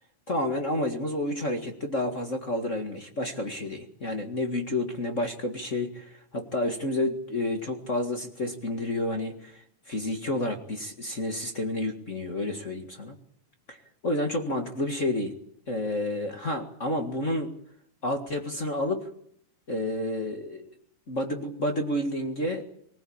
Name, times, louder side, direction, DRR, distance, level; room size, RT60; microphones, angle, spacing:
voice 1, 0.3-9.6 9.9-13.1 13.7-13.8 14.0-15.3 15.7-17.5 18.0-19.1 19.7-20.7 21.1-22.7, left 1 dB, 30° left, 4 dB, 1.7 m, -30 dB
24.0 x 16.5 x 8.7 m, 0.70 s
omnidirectional pair, 3.6 m